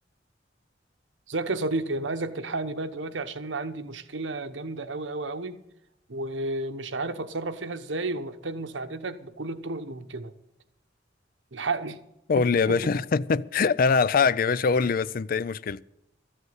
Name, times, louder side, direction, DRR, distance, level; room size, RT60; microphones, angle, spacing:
voice 1, 1.3-5.6 6.1-10.3 11.5-12.0 12.3-12.8, right 2 dB, 85° right, 1.1 m, -32 dB
voice 2, 12.3-15.8, left 5 dB, 50° left, 0.4 m, -23 dB
13.5 x 8.1 x 7.9 m
head